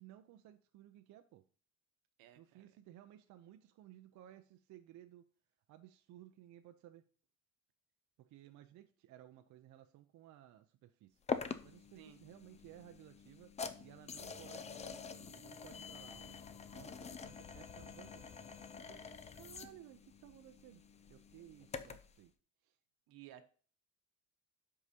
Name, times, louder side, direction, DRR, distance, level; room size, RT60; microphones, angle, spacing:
voice 1, 0.0-1.4 2.4-5.2 5.7-7.0 8.2-11.2 11.6-13.5 13.8-18.3 18.8-20.8 21.1-22.3 22.6-22.8, right 13 dB, 55° right, 8 dB, 0.5 m, -58 dB
voice 2, 2.2-2.8 12.0-12.2 23.1-23.5, right 12 dB, 75° right, 9 dB, 1.0 m, -57 dB
sound 1, 11.3-22.2, left 6 dB, 20° left, 0.3 m, -46 dB
12.5 x 4.8 x 2.8 m, 0.43 s
cardioid pair, 145°, 36 cm